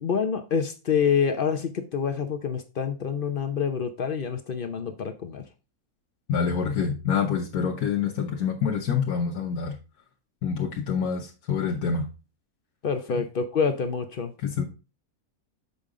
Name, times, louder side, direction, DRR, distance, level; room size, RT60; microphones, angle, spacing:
voice 1, 0.0-5.4 12.8-14.3, left 6 dB, 55° left, 0.6 m, -27 dB
voice 2, 6.3-9.8 10.4-12.1 13.1-13.2 14.4-14.6, left 6 dB, 80° left, 1.4 m, -26 dB
6.9 x 5.2 x 3.7 m
omnidirectional pair, 1.6 m